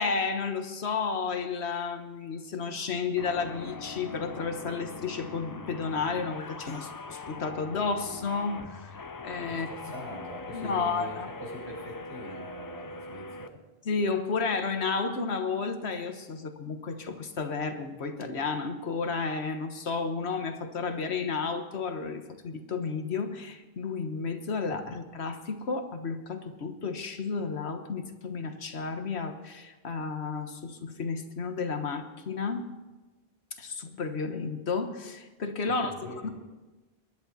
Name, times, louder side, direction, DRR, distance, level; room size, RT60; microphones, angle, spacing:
voice 1, 0.0-9.7 10.5-11.3 13.8-32.7 33.6-36.3, left 4 dB, 90° left, 7 dB, 1.5 m, -32 dB
sound 1, 3.2-13.5, left 3 dB, 30° left, 0.4 m, -42 dB
voice 2, 9.5-13.6 35.7-36.3, equal, 80° right, -5 dB, 6.8 m, -43 dB
23.5 x 11.0 x 4.1 m, 1.2 s
omnidirectional pair, 1.1 m